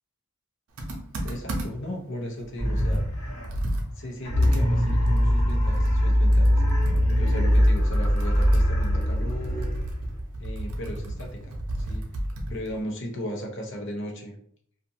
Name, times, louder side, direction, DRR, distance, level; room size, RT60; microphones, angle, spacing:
Computer keyboard, 0.8-1.9 2.4-2.5 2.8-6.1 6.3-12.8, right 1 dB, 85° right, 0.6 m, -33 dB
voice 1, 1.2-3.0 3.9-6.6 7.1-9.7 10.4-12.0 12.5-14.3, equal, 60° left, 1 dB, 0.7 m, -36 dB
sound 1, 2.6-3.7 4.2-10.2, equal, 80° left, 1.2 m, -22 dB
2.5 x 2.4 x 2.7 m, 0.63 s
head